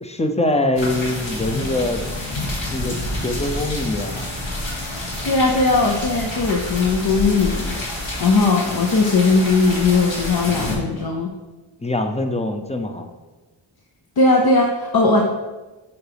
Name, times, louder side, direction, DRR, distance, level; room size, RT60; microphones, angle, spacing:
voice 1, 0.0-2.0 2.7-3.0 3.2-4.3 11.8-13.1, left 2 dB, 15° left, 6 dB, 0.6 m, -23 dB
sound 1, 0.8-10.8, left 1 dB, 65° left, 1.8 m, -28 dB
voice 2, 4.9-7.8 8.2-11.3 14.2-15.2, left 3 dB, 50° left, 1 dB, 0.7 m, -18 dB
7.0 x 3.9 x 3.4 m, 1.2 s
cardioid pair, 45°, 49 cm